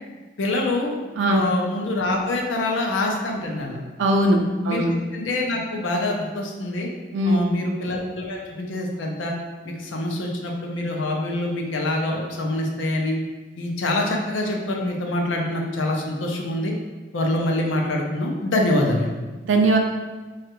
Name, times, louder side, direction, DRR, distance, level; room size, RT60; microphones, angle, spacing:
voice 1, 0.4-1.0 1.3-3.8 4.6-4.8 5.1-6.9 7.2-9.3 9.6-13.2 13.6-16.7 17.1-19.2, left 1 dB, 90° left, 0 dB, 0.5 m, -25 dB
voice 2, 4.0-4.4 4.6-4.9 7.1-7.4 19.4-19.8, right 1 dB, 80° right, 2 dB, 0.3 m, -19 dB
3.2 x 2.4 x 2.9 m, 1.3 s
head